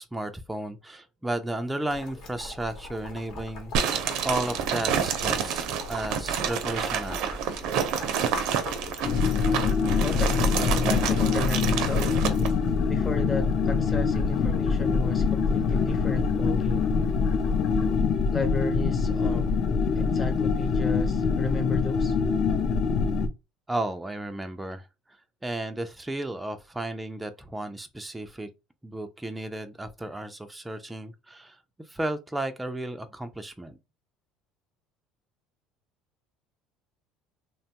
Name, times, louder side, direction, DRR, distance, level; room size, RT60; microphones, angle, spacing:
voice 1, 0.0-7.4 23.7-24.9 25.4-28.5 28.8-31.6 31.9-33.8, right 1 dB, 5° right, 0.3 m, -33 dB
Boiling, 1.9-18.0, left 3 dB, 70° left, 1.0 m, -42 dB
sound 1, 3.7-12.5, right 8 dB, 65° right, 0.5 m, -29 dB
sound 2, 9.0-23.3, left 5 dB, 55° left, 0.4 m, -24 dB
voice 2, 9.5-12.2 12.9-16.9 18.3-19.6 19.9-22.2, left 3 dB, 20° left, 0.7 m, -34 dB
2.9 x 2.2 x 2.7 m
cardioid pair, 125°, 0 cm